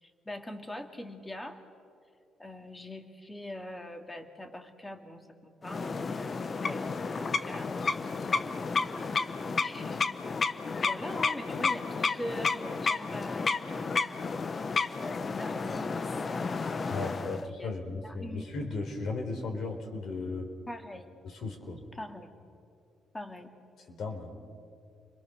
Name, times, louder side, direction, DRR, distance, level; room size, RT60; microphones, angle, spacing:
voice 1, 0.0-1.6 2.4-7.7 9.6-10.2 10.8-14.4 15.3-16.1 16.9-17.7 18.0-18.4 20.7-21.1 21.9-22.3 23.1-23.5, left 1 dB, 15° left, 5 dB, 2.3 m, -43 dB
sound 1, 5.6-17.5, left 4 dB, 40° left, 1.0 m, -32 dB
voice 2, 16.9-20.5 21.2-21.8 23.9-24.3, left 3 dB, 65° left, 4 dB, 4.2 m, -36 dB
30.0 x 22.0 x 6.7 m, 2.4 s
cardioid pair, 90°, 0 cm